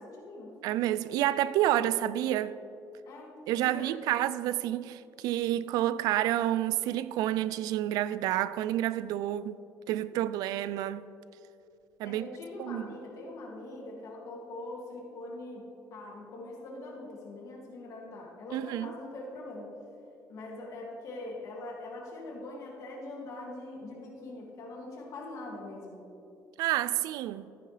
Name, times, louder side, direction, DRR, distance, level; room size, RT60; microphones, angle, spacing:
voice 1, 0.0-0.5 3.1-4.0 12.0-15.6 15.9-19.7 20.3-26.0, left 2 dB, 60° left, 2.4 m, -43 dB
voice 2, 0.6-2.6 3.5-9.6 9.9-11.0 12.0-12.3 12.6-12.9 18.5-18.9 26.6-27.5, right 13 dB, 85° right, 0.3 m, -29 dB
14.5 x 9.3 x 3.4 m
cardioid pair, 120°, 6 cm